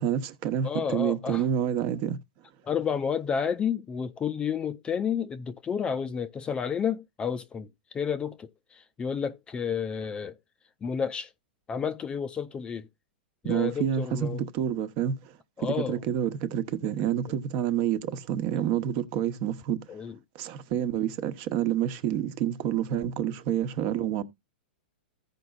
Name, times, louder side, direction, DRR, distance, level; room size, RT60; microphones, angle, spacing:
voice 1, 0.0-2.2 13.4-19.8 20.3-24.2, right 10 dB, 45° right, 1.0 m, -28 dB
voice 2, 0.6-1.4 2.6-10.4 10.8-11.3 11.7-12.9 13.4-14.4 15.6-16.0 19.9-20.2, left 7 dB, 15° left, 0.5 m, -31 dB
15.5 x 5.2 x 2.4 m
hypercardioid pair, 135°, 6 cm